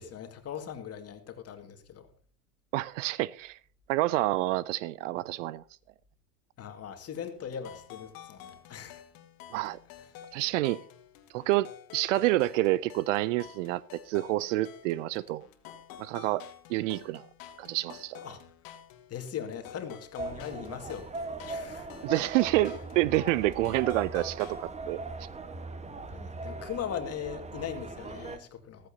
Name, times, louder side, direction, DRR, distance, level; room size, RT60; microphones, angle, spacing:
voice 1, 0.0-2.1 6.6-9.0 18.2-18.4 19.1-21.9 25.8-28.9, left 8 dB, 30° left, 2.1 m, -40 dB
voice 2, 2.7-3.6 3.9-5.6 9.5-9.8 10.3-10.8 11.3-15.5 16.0-16.4 16.7-17.3 17.6-18.2 22.0-25.0, right 17 dB, 55° right, 0.5 m, -28 dB
sound 1, 7.1-24.7, left 10 dB, 45° left, 2.1 m, -50 dB
sound 2, 20.2-28.4, right 3 dB, 15° right, 1.3 m, -40 dB
15.5 x 14.5 x 2.8 m
hypercardioid pair, 85°, 46 cm